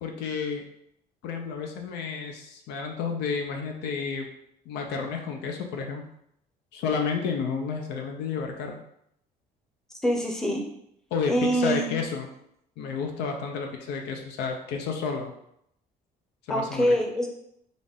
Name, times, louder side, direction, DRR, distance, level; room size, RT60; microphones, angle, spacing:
voice 1, 0.0-0.6 1.2-4.3 4.7-6.1 6.7-8.8 11.1-12.3 12.8-15.3 16.5-16.9, left 5 dB, 85° left, 3 dB, 0.7 m, -31 dB
voice 2, 10.0-10.6 11.2-11.9 16.5-17.3, equal, 5° left, 1 dB, 0.7 m, -24 dB
4.0 x 2.5 x 3.5 m, 0.73 s
cardioid pair, 110°, 17 cm